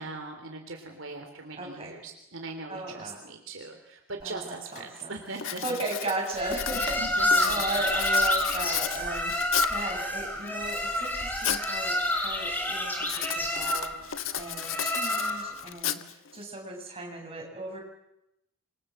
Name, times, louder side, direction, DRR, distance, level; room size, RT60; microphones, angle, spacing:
voice 1, 0.0-5.8 6.7-7.8, right 3 dB, 65° right, 3 dB, 3.4 m, -40 dB
voice 2, 1.6-1.9 2.7-3.2 4.2-5.2 5.6-17.8, right 2 dB, 25° right, 0 dB, 8.0 m, -36 dB
Writing, 4.2-4.3 4.8-5.0 5.3-9.9 10.5-11.7 12.0-12.4 13.0-16.4, left 10 dB, 70° left, 1.4 m, -34 dB
sound 1, 6.4-15.6, left 1 dB, 10° left, 5.0 m, -29 dB
27.5 x 24.5 x 7.8 m, 0.84 s
head